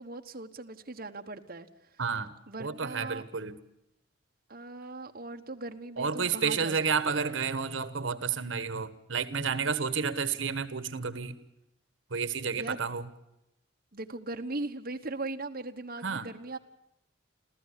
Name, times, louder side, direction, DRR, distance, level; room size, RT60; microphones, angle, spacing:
voice 1, 0.0-1.7 2.5-3.3 4.5-6.8 7.0-7.2 12.5-12.8 13.9-16.6, right 2 dB, 50° right, 3 dB, 1.3 m, -39 dB
voice 2, 2.0-2.3 2.6-3.6 6.0-11.4 12.1-13.0 16.0-16.3, right 5 dB, 80° right, 13 dB, 1.3 m, -31 dB
27.5 x 15.0 x 8.3 m, 0.86 s
head